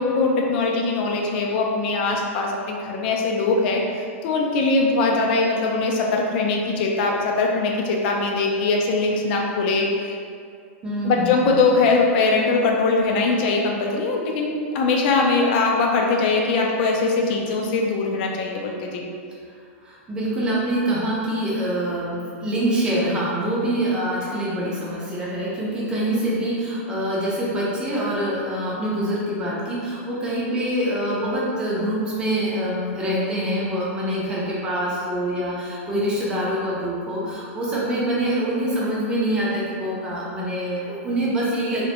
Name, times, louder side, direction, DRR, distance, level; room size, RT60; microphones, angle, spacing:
voice 1, 0.0-3.8 4.2-10.1 11.0-19.0, left 3 dB, 50° left, 0 dB, 0.4 m, -21 dB
voice 2, 10.8-11.5 19.8-41.8, right 1 dB, 10° right, -6 dB, 0.5 m, -25 dB
2.2 x 2.1 x 2.8 m, 2.3 s
supercardioid pair, 150°, 7 cm